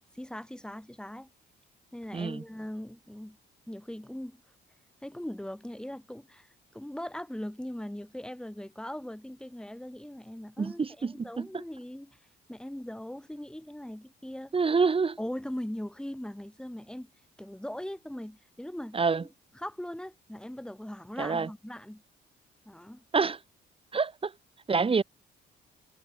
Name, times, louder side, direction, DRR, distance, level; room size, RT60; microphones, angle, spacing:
voice 1, 0.1-1.3 1.9-3.4 3.7-4.4 5.0-6.5 6.7-12.2 12.5-14.5 15.2-17.1 17.4-19.0 19.6-22.0 22.7-23.0, left 1 dB, 5° left, 3.5 m, -40 dB
voice 2, 2.1-2.4 10.6-11.6 14.5-15.2 18.9-19.2 21.2-21.5 23.1-23.4 23.9-24.3 24.7-25.0, right 5 dB, 30° right, 1.3 m, -27 dB
cardioid pair, 90°, 20 cm